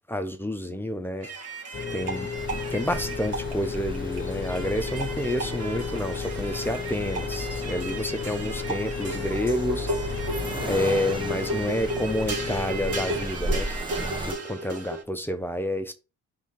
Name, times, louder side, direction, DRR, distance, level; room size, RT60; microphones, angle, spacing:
voice 1, 0.1-1.3 1.9-2.3 2.7-9.9 10.6-13.7 14.0-15.9, left 1 dB, 5° left, 0.9 m, -29 dB
sound 1, 1.2-15.0, right 2 dB, 55° right, 1.9 m, -35 dB
sound 2, 1.7-13.3, left 7 dB, 40° left, 1.0 m, -34 dB
Accelerating revving vroom, 2.4-14.3, equal, 15° right, 1.3 m, -35 dB
5.0 x 3.8 x 5.5 m
cardioid pair, 90°, 30 cm